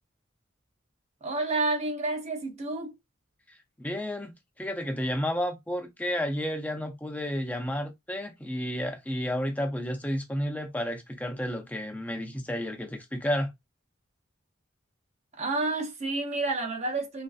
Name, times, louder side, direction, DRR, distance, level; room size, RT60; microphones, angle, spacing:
voice 1, 1.2-2.9 15.4-17.2, right 2 dB, 35° right, 0.7 m, -29 dB
voice 2, 3.8-4.3 4.6-13.5, equal, 10° left, 0.5 m, -31 dB
3.0 x 2.5 x 2.3 m
head